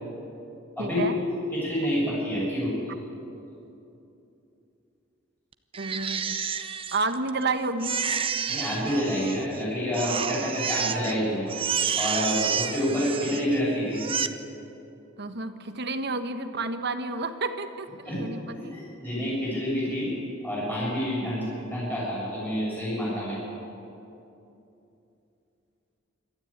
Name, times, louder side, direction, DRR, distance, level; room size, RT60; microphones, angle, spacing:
voice 1, 0.8-1.1 5.8-6.4 6.9-8.0 15.2-18.8, right 3 dB, 55° right, 8 dB, 1.2 m, -30 dB
voice 2, 1.5-2.7 8.5-11.6 12.0-14.0 18.1-18.2 18.5-20.1 20.4-23.5, equal, 10° left, -7 dB, 7.2 m, -28 dB
Crying sobbing, 5.7-7.4 7.8-9.6 9.9-11.2 11.5-13.6 13.9-14.3, right 7 dB, 25° right, 0.7 m, -30 dB
25.5 x 13.0 x 8.8 m, 2.8 s
head